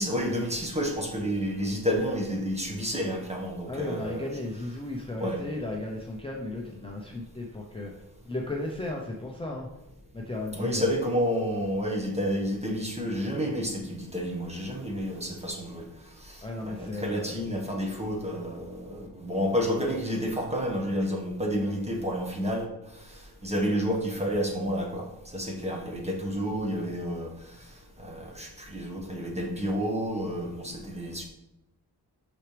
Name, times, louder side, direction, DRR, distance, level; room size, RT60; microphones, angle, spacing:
voice 1, 0.0-4.3 5.2-5.4 10.5-15.8 16.2-22.6 23.4-27.3 28.0-31.2, equal, 15° right, 0 dB, 1.3 m, -30 dB
voice 2, 3.7-7.9 8.3-9.7 10.1-10.9 16.4-17.3, left 2 dB, 15° left, -1 dB, 0.7 m, -35 dB
6.3 x 6.0 x 3.3 m, 0.88 s
wide cardioid pair, 140°, 41 cm